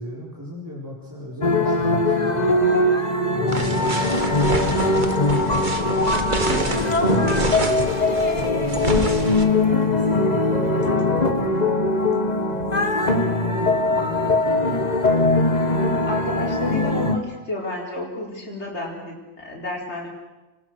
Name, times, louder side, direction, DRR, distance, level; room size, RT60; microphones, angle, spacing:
voice 1, 0.0-2.6 3.2-9.4 9.8-11.5 12.5-15.5, equal, 15° right, -6 dB, 4.5 m, -36 dB
sound 1, 1.4-17.2, left 2 dB, 40° left, 1.8 m, -21 dB
sound 2, 3.5-9.4, right 3 dB, 45° right, 1.9 m, -28 dB
voice 2, 6.3-6.8 16.0-20.1, left 1 dB, 90° left, -2 dB, 4.8 m, -31 dB
29.0 x 19.5 x 6.4 m, 1.1 s
omnidirectional pair, 1.1 m